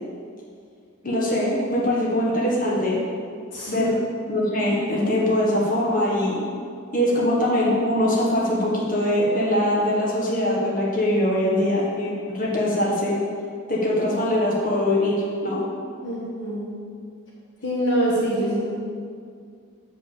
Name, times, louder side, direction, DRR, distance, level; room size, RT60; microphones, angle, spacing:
voice 1, 1.0-3.0 3.7-4.0 4.3-6.4 6.9-13.2 13.7-15.6, left 1 dB, 40° left, -5 dB, 1.6 m, -22 dB
voice 2, 3.5-3.9 16.0-16.7 17.6-18.7, right 1 dB, 60° left, -5 dB, 1.4 m, -25 dB
7.4 x 5.3 x 6.7 m, 2.3 s
head